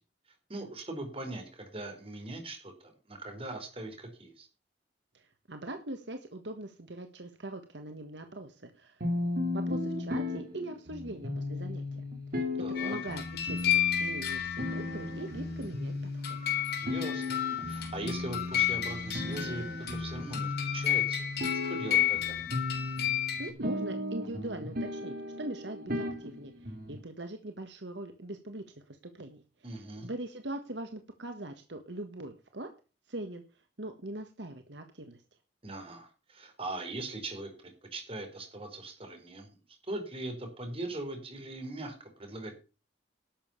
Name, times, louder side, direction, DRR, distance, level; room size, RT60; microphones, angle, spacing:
voice 1, 0.5-4.5 12.6-13.0 16.8-21.3 21.7-22.4 29.6-30.1 35.6-39.5 39.9-42.5, right 2 dB, 30° right, 5 dB, 4.5 m, -40 dB
voice 2, 5.1-9.0 9.5-12.0 12.3-12.4 12.8-16.5 23.4-32.7 33.1-33.4 33.8-35.2, right 1 dB, 70° right, 6 dB, 1.6 m, -42 dB
sound 1, 9.0-27.0, left 2 dB, 55° right, 3.2 m, -36 dB
sound 2, 12.7-15.1 16.2-23.5, left 11 dB, 60° left, 3.9 m, -32 dB
12.0 x 7.1 x 7.1 m, 0.33 s
head